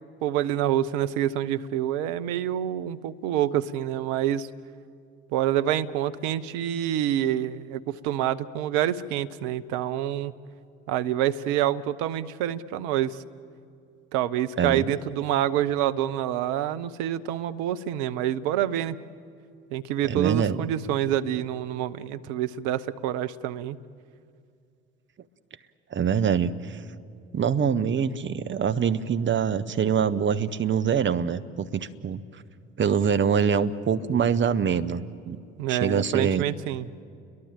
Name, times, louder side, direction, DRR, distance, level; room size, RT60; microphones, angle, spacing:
voice 1, 0.2-4.5 5.3-10.3 10.9-13.2 14.1-19.0 19.7-23.8 35.6-36.9, right 11 dB, 65° right, 12 dB, 0.9 m, -27 dB
voice 2, 20.0-20.6 25.9-26.8 27.3-32.2 32.8-35.4 35.7-36.4, right 7 dB, 40° right, 10 dB, 1.2 m, -24 dB
30.0 x 22.5 x 7.5 m, 2.4 s
hypercardioid pair, 50°, 31 cm